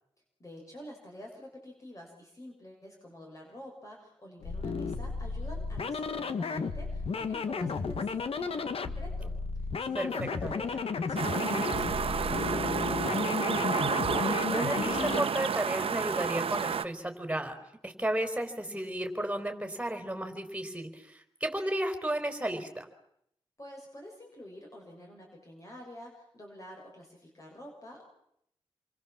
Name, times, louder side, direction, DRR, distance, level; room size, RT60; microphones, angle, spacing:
voice 1, 0.4-13.5 23.6-28.0, equal, 35° left, 0 dB, 6.8 m, -48 dB
sound 1, 4.4-15.2, left 5 dB, 80° left, 1.6 m, -33 dB
sound 2, 11.2-16.8, right 6 dB, 75° right, 1.2 m, -30 dB
voice 2, 14.1-17.5 17.8-22.9, right 1 dB, 10° right, 6 dB, 4.5 m, -33 dB
28.5 x 24.0 x 7.5 m, 0.75 s
wide cardioid pair, 100°, 10 cm